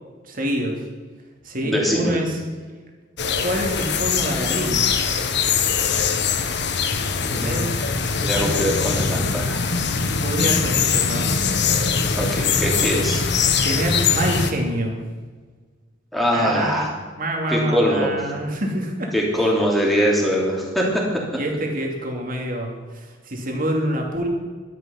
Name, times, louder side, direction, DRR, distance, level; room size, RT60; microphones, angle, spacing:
voice 1, 0.2-0.8 1.4-2.4 3.4-4.9 7.3-7.7 8.3-8.6 10.0-11.3 13.6-15.0 16.3-16.9 17.2-19.1 21.3-24.3, equal, 45° right, 1 dB, 2.7 m, -26 dB
voice 2, 1.6-2.2 7.2-7.6 8.2-9.6 12.2-13.2 16.1-16.9 17.5-18.1 19.1-21.0, equal, ahead, -3 dB, 3.1 m, -22 dB
sound 1, 3.2-14.5, left 5 dB, 65° left, 1.1 m, -22 dB
12.0 x 10.5 x 5.9 m, 1.4 s
head